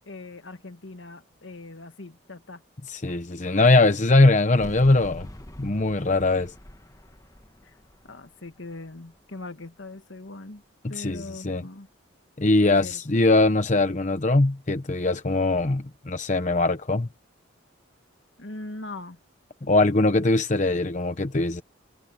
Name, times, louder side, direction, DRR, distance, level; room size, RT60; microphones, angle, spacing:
voice 1, 0.0-2.6 7.6-7.7 8.0-10.6 10.9-11.9 12.6-13.0 18.4-19.2, left 2 dB, 70° left, 1.7 m, -40 dB
voice 2, 2.9-5.3 5.6-6.5 10.8-11.6 12.4-17.1 19.6-21.6, left 2 dB, 35° left, 0.9 m, -21 dB
sound 1, 4.6-9.8, left 1 dB, 15° left, 1.3 m, -45 dB
head